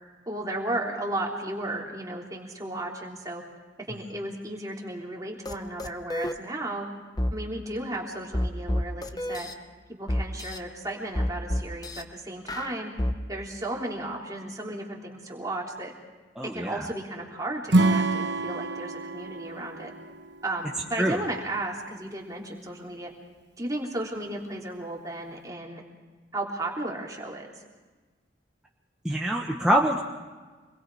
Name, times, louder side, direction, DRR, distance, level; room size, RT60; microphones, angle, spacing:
voice 1, 0.3-3.4 3.8-6.9 7.3-9.5 9.9-12.9 13.3-15.9 16.4-19.9 20.4-23.1 23.6-25.8 26.3-27.5, right 1 dB, 20° right, -2 dB, 3.3 m, -34 dB
sound 1, 5.5-5.6 5.8-6.4 7.2-7.3 8.3-9.5 10.1-10.6 11.2-12.0 12.5-13.2, left 1 dB, 20° left, 0.9 m, -28 dB
voice 2, 16.3-16.9 21.0-21.2 29.0-30.0, right 1 dB, 5° right, -3 dB, 1.4 m, -25 dB
Acoustic guitar / Strum, 17.7-21.0, right 2 dB, 65° right, 1.2 m, -26 dB
26.5 x 21.5 x 4.9 m, 1.3 s
head